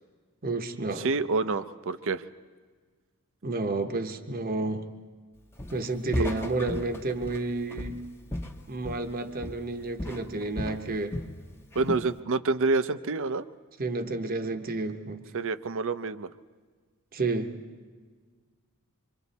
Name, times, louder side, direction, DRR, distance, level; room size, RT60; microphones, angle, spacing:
voice 1, 0.4-1.1 3.4-4.8 5.7-8.0 8.7-11.2 13.8-15.2 17.1-17.5, right 2 dB, 40° right, 6 dB, 0.9 m, -31 dB
voice 2, 1.0-2.2 11.8-13.4 15.3-16.3, right 3 dB, 60° right, 13 dB, 0.6 m, -27 dB
Walk footsteps, 5.6-5.9 6.1-9.2 9.4-9.7 10.0-11.4 11.7-12.1, left 1 dB, 10° left, 0.9 m, -35 dB
26.0 x 24.5 x 4.2 m, 1.5 s
head